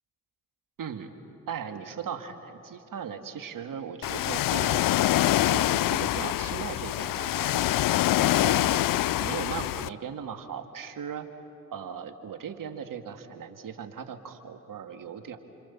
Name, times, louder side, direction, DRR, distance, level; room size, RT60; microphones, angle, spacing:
voice 1, 0.8-1.1 1.5-4.8 5.5-8.8 9.2-11.3 11.7-15.4, right 7 dB, 60° right, 6 dB, 2.2 m, -38 dB
Ocean, 4.0-9.9, left 14 dB, 60° left, 0.6 m, -25 dB
27.5 x 27.5 x 7.2 m, 2.8 s
hypercardioid pair, 40°, 37 cm